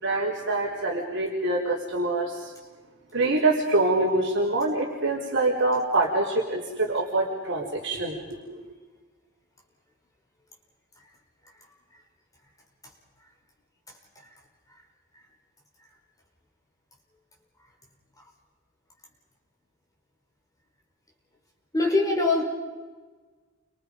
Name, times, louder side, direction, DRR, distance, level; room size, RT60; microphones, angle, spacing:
voice 1, 0.0-2.5 3.1-8.7, right 2 dB, 60° right, -3 dB, 4.1 m, -25 dB
voice 2, 21.7-22.4, left 2 dB, 15° left, -1 dB, 5.1 m, -22 dB
29.5 x 26.0 x 5.3 m, 1.4 s
head